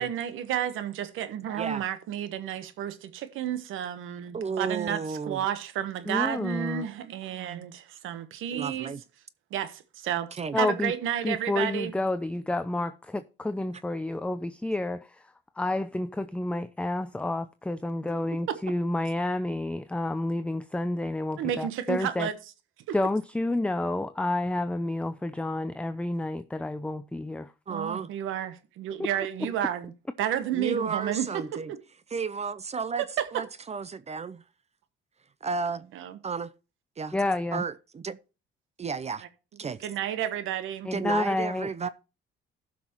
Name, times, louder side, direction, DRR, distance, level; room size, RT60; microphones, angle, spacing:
voice 1, 0.0-8.9 9.5-10.3 10.6-11.9 18.5-18.6 21.4-22.4 22.9-23.0 27.7-29.9 30.2-31.3 31.7-31.8 33.2-33.3 35.9-36.2 39.8-40.9, right 10 dB, 90° right, 1.2 m, -31 dB
voice 2, 4.3-5.5 6.0-6.1 8.5-9.0 10.3-10.6 27.7-28.1 30.5-31.7 32.1-33.0 33.3-34.4 35.4-35.9 36.2-36.5 37.0-37.2 37.5-38.2 38.8-39.3 39.6-39.9 40.9-41.9, right 5 dB, 35° right, 0.6 m, -33 dB
voice 3, 6.1-6.8 10.5-10.9 11.2-15.2 15.6-22.3 22.9-27.5 37.1-37.6 40.8-41.9, left 2 dB, 5° left, 0.5 m, -30 dB
15.5 x 6.1 x 3.0 m
cardioid pair, 90°, 20 cm